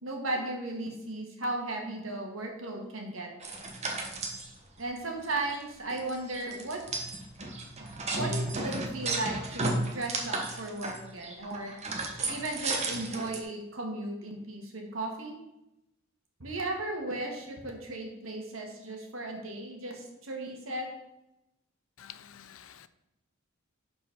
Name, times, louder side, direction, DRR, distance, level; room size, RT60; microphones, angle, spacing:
voice 1, 0.0-3.3 4.8-6.8 7.8-11.7 12.3-15.3 16.4-20.9, right 2 dB, 70° right, 1 dB, 1.8 m, -36 dB
sound 1, 3.4-4.5 5.0-5.1 5.2-5.6 6.0-13.4, right 2 dB, 35° right, 1.2 m, -34 dB
voice 2, 22.0-22.9, left 10 dB, 75° left, 13 dB, 0.5 m, -49 dB
11.0 x 4.6 x 4.5 m, 0.91 s
head